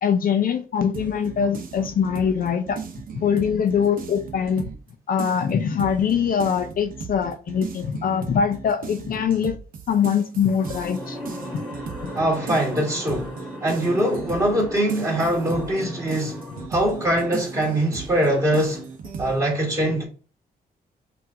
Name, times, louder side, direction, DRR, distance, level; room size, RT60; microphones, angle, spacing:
voice 1, 0.0-2.8 3.1-4.6 5.1-9.6 9.9-11.2 11.5-11.6 12.0-12.1, left 7 dB, 60° left, 0.6 m, -23 dB
sound 1, 0.9-4.9 5.2-19.4, right 6 dB, 60° right, 0.8 m, -37 dB
sound 2, 10.6-16.7, equal, ahead, 1.7 m, -37 dB
voice 2, 12.1-16.4 16.7-18.9 19.2-20.0, right 1 dB, 20° right, 2.3 m, -23 dB
5.8 x 2.6 x 3.5 m
wide cardioid pair, 145°, 16 cm